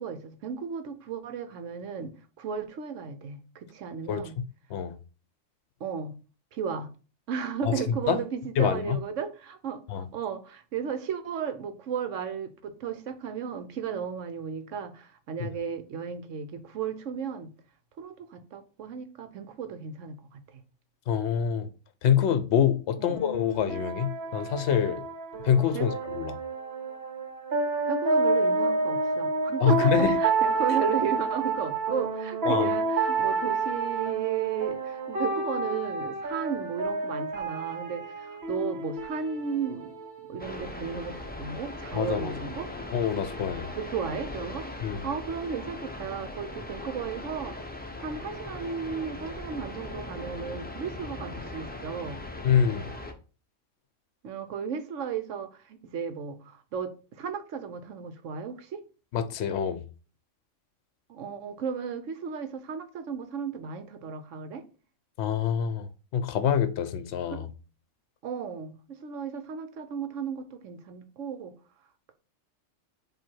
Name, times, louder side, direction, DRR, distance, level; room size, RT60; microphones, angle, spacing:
voice 1, 0.0-2.1 2.4-4.4 5.8-6.2 6.5-6.9 7.3-17.5 18.0-20.6 23.0-23.2 25.7-25.9 27.9-39.9 40.3-42.7 43.7-44.7 45.0-47.5 48.0-52.2 54.2-58.8 61.1-64.6 67.3-67.4 68.2-71.6, right 7 dB, 75° right, 1.1 m, -34 dB
voice 2, 4.1-4.4 4.7-4.9 7.6-7.7 8.1-8.2 8.6-9.0 9.9-10.0 15.4-15.5 21.1-21.7 22.0-25.0 25.4-26.3 29.6-30.2 32.5-32.7 41.9-42.3 42.9-43.7 44.8-45.1 52.4-52.9 59.1-59.8 65.2-65.9 66.1-67.5, left 8 dB, 65° left, 0.9 m, -26 dB
sound 1, 23.1-40.6, right 3 dB, 55° right, 1.3 m, -29 dB
sound 2, 40.4-53.1, left 2 dB, 10° left, 0.6 m, -39 dB
7.5 x 2.8 x 4.5 m
omnidirectional pair, 1.3 m